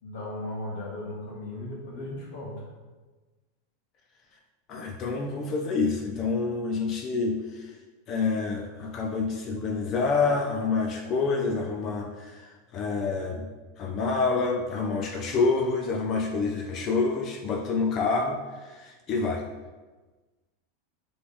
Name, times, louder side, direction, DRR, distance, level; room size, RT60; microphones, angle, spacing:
voice 1, 0.0-2.7, left 1 dB, 65° left, -3 dB, 1.5 m, -36 dB
voice 2, 4.7-7.7 8.1-13.5 13.8-19.4, left 4 dB, 35° left, 2 dB, 0.4 m, -27 dB
4.0 x 3.4 x 3.5 m, 1.3 s
supercardioid pair, 135°, 0 cm